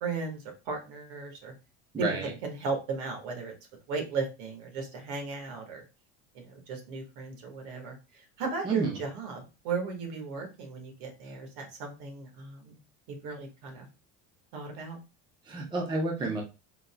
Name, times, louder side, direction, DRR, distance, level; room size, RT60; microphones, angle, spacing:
voice 1, 0.0-1.5 2.0-3.5 3.9-5.8 6.4-12.8 13.1-13.9 14.5-15.0 16.2-16.3, right 4 dB, 65° right, 3 dB, 1.6 m, -36 dB
voice 2, 1.9-2.3 8.6-9.0 15.5-16.4, right 2 dB, 15° right, 1 dB, 0.6 m, -30 dB
4.4 x 3.9 x 2.2 m, 0.28 s
cardioid pair, 155°, 36 cm